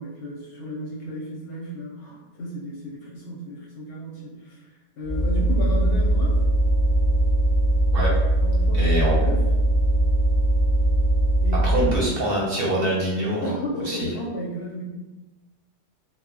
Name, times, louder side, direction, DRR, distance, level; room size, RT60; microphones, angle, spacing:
voice 1, 0.0-4.7 5.0-6.4 8.4-9.4 11.4-12.0 13.4-14.9, equal, 60° left, -3 dB, 0.7 m, -33 dB
sound 1, 5.1-11.9, right 1 dB, 25° left, 0.6 m, -20 dB
voice 2, 8.7-9.2 11.6-13.5 13.9-14.1, right 1 dB, 60° right, -4 dB, 0.7 m, -24 dB
2.1 x 2.0 x 3.6 m, 1.1 s
omnidirectional pair, 1.3 m